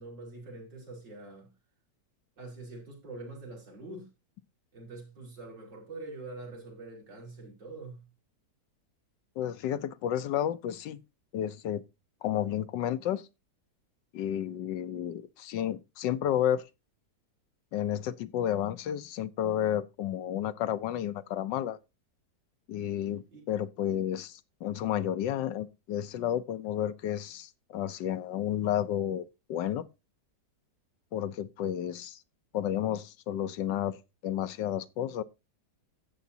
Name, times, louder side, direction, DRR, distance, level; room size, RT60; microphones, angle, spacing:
voice 1, 0.0-1.5 2.4-4.1 4.7-8.0 23.3-23.5, right 2 dB, 90° right, 4.9 m, -44 dB
voice 2, 9.4-11.0 11.3-11.8 12.2-13.3 14.1-16.6 17.7-21.8 22.7-29.8 31.1-32.2 32.5-35.2, left 11 dB, 80° left, 1.4 m, -31 dB
13.0 x 8.3 x 2.7 m
omnidirectional pair, 1.9 m